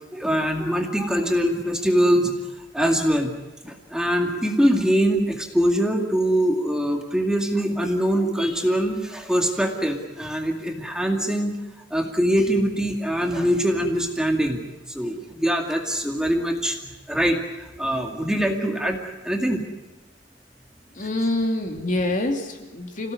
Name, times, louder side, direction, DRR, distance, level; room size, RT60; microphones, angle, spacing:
voice 1, 0.1-2.3 2.7-3.3 3.6-11.6 11.9-16.8 17.1-19.0 19.2-19.6, equal, 5° right, 2 dB, 2.3 m, -23 dB
voice 2, 20.9-23.1, left 1 dB, 45° left, 3 dB, 2.8 m, -26 dB
27.5 x 17.0 x 9.5 m, 1.1 s
head